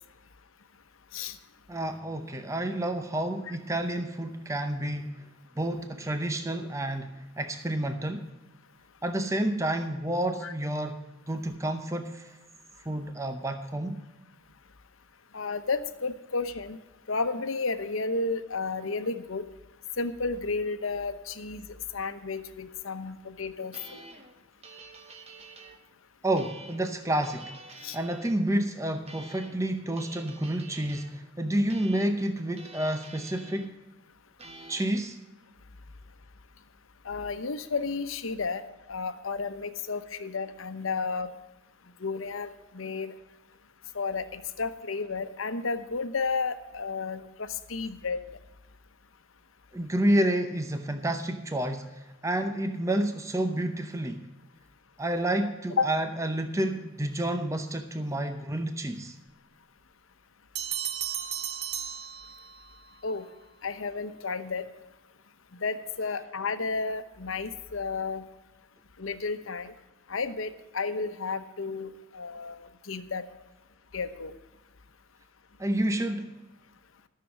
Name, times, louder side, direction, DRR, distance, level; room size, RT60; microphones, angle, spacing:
voice 1, 1.7-5.2 5.6-8.3 9.0-11.0 11.3-12.4 12.8-14.0 26.2-27.5 27.9-33.7 34.7-35.2 49.7-54.3 55.0-59.2 75.6-76.3, right 1 dB, 15° right, 8 dB, 0.7 m, -29 dB
voice 2, 15.3-16.8 17.1-19.4 20.0-21.7 21.9-24.0 27.8-28.0 37.0-38.6 38.9-41.3 42.0-43.1 43.9-48.2 55.8-55.9 63.0-63.3 63.6-64.7 65.6-68.2 69.0-69.7 70.1-73.3 73.9-74.3, left 4 dB, 80° left, 10 dB, 0.9 m, -32 dB
sound 1, 23.7-25.8 26.4-28.3 29.1-29.7 29.9-31.1 31.7-33.7 34.4-35.0, right 2 dB, 30° right, 1.1 m, -48 dB
Bell, 60.5-62.8, right 9 dB, 55° right, 0.8 m, -34 dB
13.5 x 6.8 x 7.2 m, 1.1 s
head